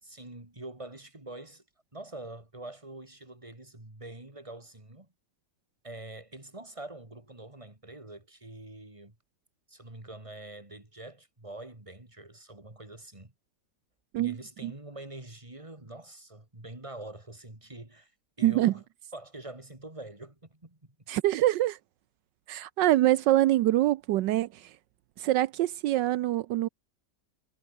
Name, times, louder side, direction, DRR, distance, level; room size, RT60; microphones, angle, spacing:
voice 1, 0.0-1.6 1.9-5.1 5.8-9.1 9.7-13.3 14.2-18.1 18.4-18.8 19.1-20.9, right 2 dB, 15° right, 3.4 m, -45 dB
voice 2, 18.4-18.7 21.1-21.8 22.5-24.7 25.2-26.7, right 15 dB, 80° right, 1.3 m, -25 dB
omnidirectional pair, 1.9 m